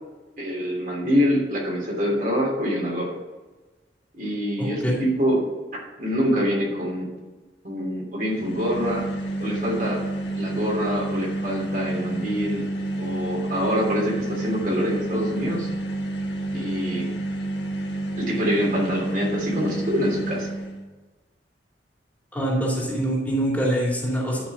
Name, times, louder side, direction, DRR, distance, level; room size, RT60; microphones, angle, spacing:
voice 1, 0.4-3.1 4.1-5.4 6.0-7.1 7.6-9.1 9.4-10.0 10.3-12.7 12.9-15.7 16.5-17.1 18.2-20.5, equal, 50° right, -3 dB, 3.1 m, -25 dB
voice 2, 4.6-5.0 22.3-24.5, right 1 dB, 10° left, -4 dB, 2.4 m, -24 dB
sound 1, 8.2-20.8, right 1 dB, 80° left, 1.7 m, -29 dB
11.0 x 5.5 x 5.6 m, 1.2 s
head